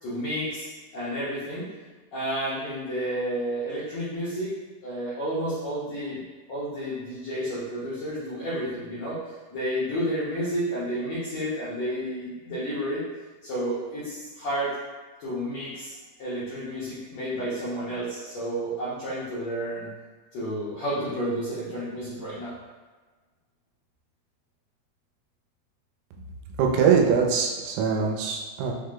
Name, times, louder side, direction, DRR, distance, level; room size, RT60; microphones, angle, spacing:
voice 1, 0.0-1.7 2.1-4.5 4.8-6.2 6.5-9.2 9.5-13.0 13.4-14.7 15.2-19.9 20.3-22.5, equal, 75° left, -11 dB, 1.6 m, -31 dB
voice 2, 26.6-28.7, right 6 dB, 85° right, 1 dB, 2.7 m, -22 dB
6.1 x 2.1 x 3.7 m, 1.3 s
omnidirectional pair, 4.6 m